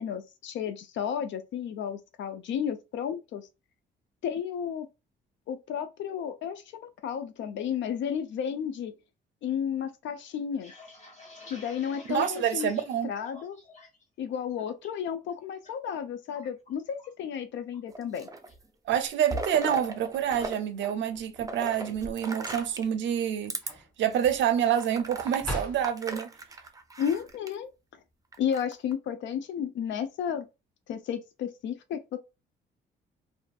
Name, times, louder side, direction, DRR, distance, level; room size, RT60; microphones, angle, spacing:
voice 1, 0.0-3.5 4.2-4.9 5.5-8.9 9.4-10.7 11.5-12.7 13.0-13.6 14.2-18.3 27.0-27.7 28.4-30.5 30.9-32.2, left 8 dB, 70° left, 0.4 m, -32 dB
sound 1, 10.4-14.0 14.4-14.9 15.3-15.7 16.0-17.2 17.6-17.8 18.1-18.6, left 2 dB, 40° left, 1.0 m, -50 dB
voice 2, 12.1-13.1 18.9-23.5 24.0-26.3, right 9 dB, 70° right, 0.5 m, -27 dB
sound 2, 17.9-18.6 18.9-20.6 20.8-22.9 23.4-23.7 24.2-24.3 24.7-27.5 28.3-28.9, right 2 dB, 15° right, 0.5 m, -37 dB
sound 3, 19.9-21.1 22.3-23.0 23.4-25.9, equal, 5° left, 1.3 m, -40 dB
2.5 x 2.4 x 2.2 m
cardioid pair, 90°, 20 cm